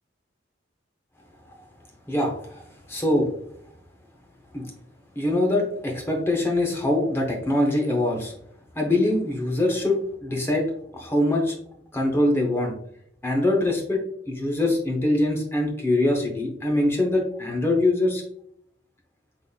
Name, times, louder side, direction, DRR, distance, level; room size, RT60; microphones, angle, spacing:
voice 1, 2.1-3.3 4.5-4.7 5.2-8.3 8.8-10.6 10.9-11.5 11.9-12.7 13.2-14.0 14.3-18.2, left 1 dB, 15° left, 1 dB, 0.6 m, -23 dB
3.7 x 3.6 x 2.3 m, 0.68 s
head